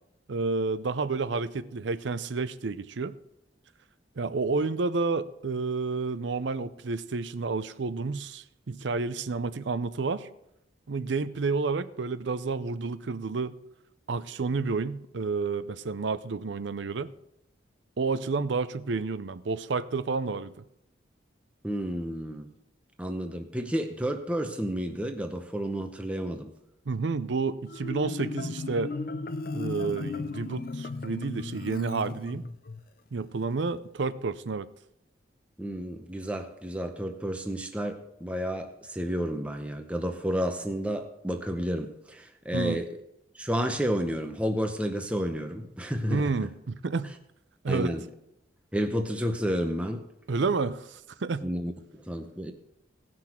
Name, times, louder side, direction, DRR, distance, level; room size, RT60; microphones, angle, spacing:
voice 1, 0.3-3.1 4.2-10.3 10.9-13.5 14.1-17.1 18.0-20.5 26.9-29.0 29.5-32.4 33.1-34.7 42.5-42.8 46.1-47.1 47.6-47.9 50.3-51.4, right 4 dB, 70° right, 14 dB, 0.5 m, -30 dB
voice 2, 21.6-22.5 23.0-26.5 35.6-43.0 43.3-46.5 47.7-48.0 48.7-50.0 51.4-52.5, equal, 5° right, 5 dB, 0.7 m, -31 dB
Marimba xylophone, 27.7-32.8, left 3 dB, 50° left, 0.5 m, -36 dB
17.0 x 6.1 x 4.4 m, 0.79 s
head